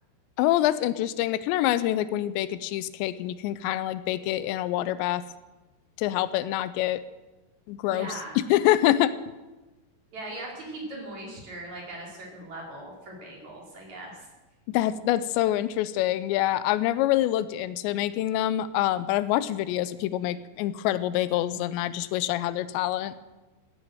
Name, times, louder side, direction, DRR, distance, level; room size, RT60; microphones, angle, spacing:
voice 1, 0.4-5.2 6.0-7.0 7.7-9.1 14.7-23.1, left 13 dB, 90° left, 15 dB, 2.9 m, -26 dB
voice 2, 7.8-8.4 10.1-14.3, right 1 dB, 45° right, -2 dB, 4.6 m, -39 dB
16.0 x 9.6 x 7.8 m, 1.1 s
omnidirectional pair, 5.0 m